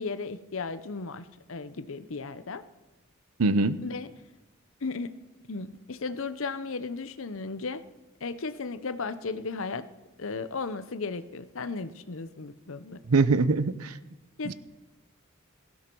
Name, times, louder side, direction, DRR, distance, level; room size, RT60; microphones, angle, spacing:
voice 1, 0.0-2.6 3.8-4.1 4.8-5.2 5.5-7.8 8.2-9.8 10.2-13.0 14.4-14.5, left 4 dB, 65° left, 13 dB, 0.8 m, -35 dB
voice 2, 3.4-3.8 13.1-14.0 14.4-14.5, right 3 dB, 90° right, 15 dB, 0.7 m, -23 dB
17.0 x 15.5 x 4.6 m, 1.1 s
head